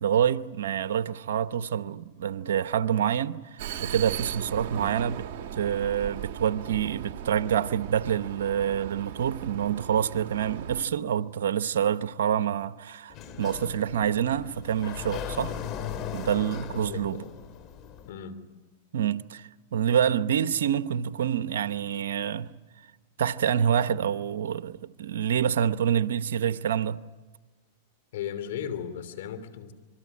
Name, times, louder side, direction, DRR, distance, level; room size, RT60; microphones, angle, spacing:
voice 1, 0.0-5.3 5.6-15.5 16.1-17.2 18.9-22.5 23.2-27.0, right 9 dB, 80° right, 0.9 m, -27 dB
Vehicle, 3.6-10.8, right 10 dB, 55° right, 2.0 m, -38 dB
Sliding door, 13.1-18.1, left 8 dB, 40° left, 2.8 m, -38 dB
voice 2, 16.7-17.3 18.0-18.5 28.1-29.7, left 8 dB, 70° left, 3.2 m, -36 dB
27.0 x 22.5 x 8.5 m
hypercardioid pair, 130°, 0 cm